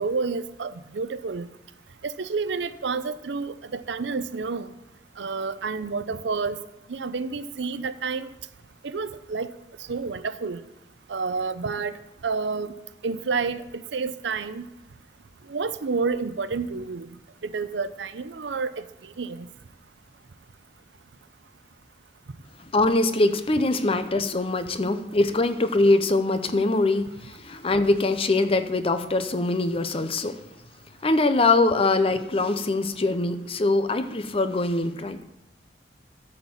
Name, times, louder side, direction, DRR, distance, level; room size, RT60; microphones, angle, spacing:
voice 1, 0.0-1.5 2.0-4.7 5.2-6.6 6.9-8.3 8.8-9.5 9.9-10.6 11.1-11.9 12.2-12.7 13.0-14.6 15.5-17.1 17.4-18.8 19.2-19.5, right 4 dB, 75° right, 13 dB, 0.6 m, -29 dB
voice 2, 22.7-30.4 31.0-35.2, left 2 dB, 30° left, 10 dB, 0.6 m, -23 dB
13.0 x 4.4 x 7.2 m, 0.94 s
head